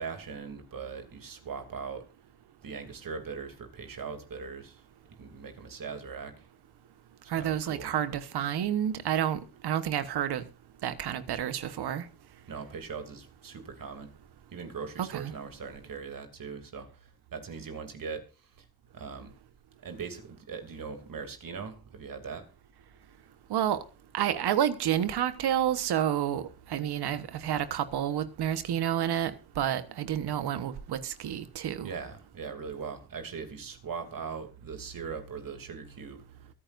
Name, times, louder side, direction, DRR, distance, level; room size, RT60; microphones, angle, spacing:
voice 1, 0.0-2.0 2.6-4.8 5.2-6.3 7.3-7.9 12.5-14.1 14.5-18.7 18.9-19.3 19.8-22.5 31.8-36.2, right 5 dB, 60° right, 2.9 m, -40 dB
voice 2, 7.3-10.4 10.8-12.1 15.0-15.3 23.5-23.8 24.1-31.9, right 10 dB, 90° right, 1.3 m, -29 dB
23.0 x 9.8 x 2.6 m
cardioid pair, 80°, 38 cm